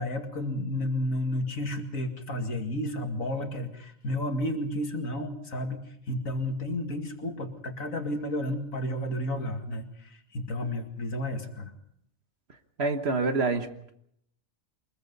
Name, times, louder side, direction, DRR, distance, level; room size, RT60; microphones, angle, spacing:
voice 1, 0.0-11.7, left 1 dB, 80° left, 5 dB, 2.6 m, -32 dB
voice 2, 12.8-13.9, right 3 dB, 50° right, 8 dB, 1.6 m, -27 dB
24.5 x 21.0 x 5.5 m, 0.72 s
omnidirectional pair, 1.4 m